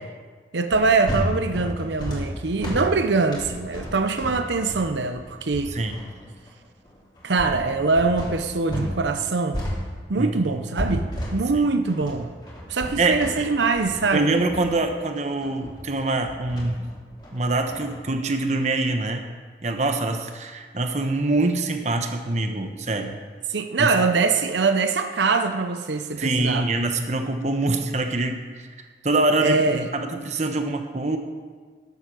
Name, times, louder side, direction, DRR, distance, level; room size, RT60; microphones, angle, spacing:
voice 1, 0.5-5.7 7.2-9.6 10.1-12.3 12.7-14.3 23.5-26.7 29.4-29.8, right 4 dB, 85° right, 7 dB, 0.7 m, -23 dB
sound 1, 0.7-9.0 9.2-18.0, equal, 25° left, 2.9 m, -32 dB
voice 2, 10.2-10.5 11.6-11.7 13.0-13.5 14.1-16.8 17.3-19.2 19.6-23.2 23.8-23.9 26.2-28.7 29.0-31.2, right 2 dB, 40° right, 5 dB, 1.0 m, -24 dB
13.5 x 8.2 x 6.2 m, 1.6 s
head